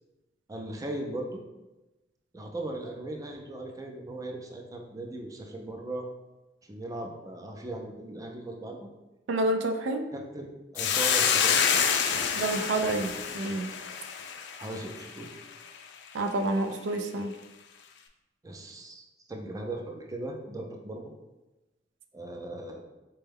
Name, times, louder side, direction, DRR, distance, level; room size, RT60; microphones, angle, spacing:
voice 1, 0.5-1.4 2.3-6.1 6.6-8.9 10.1-11.6 14.6-15.3 18.4-21.1 22.1-22.8, right 1 dB, 20° right, 1 dB, 0.4 m, -38 dB
voice 2, 9.3-10.0 12.3-13.7 16.1-17.3, right 2 dB, 85° right, 5 dB, 0.4 m, -28 dB
Hiss, 10.8-15.3, left 7 dB, 65° left, 0.4 m, -27 dB
4.3 x 2.2 x 3.4 m, 1.0 s
head